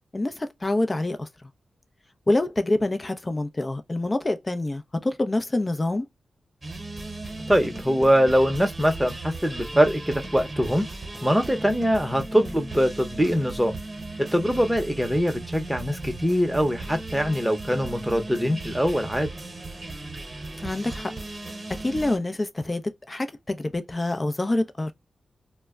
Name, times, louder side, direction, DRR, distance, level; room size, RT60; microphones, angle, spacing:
voice 1, 0.1-1.3 2.3-6.1 12.3-12.6 20.6-21.1 21.7-24.9, left 2 dB, 30° left, 0.5 m, -26 dB
sound 1, 6.6-22.2, right 2 dB, 35° right, 0.9 m, -37 dB
voice 2, 7.5-10.9 11.2-13.7 14.2-19.3, equal, 5° right, 0.8 m, -23 dB
2.1 x 2.1 x 3.5 m
cardioid pair, 50°, 0 cm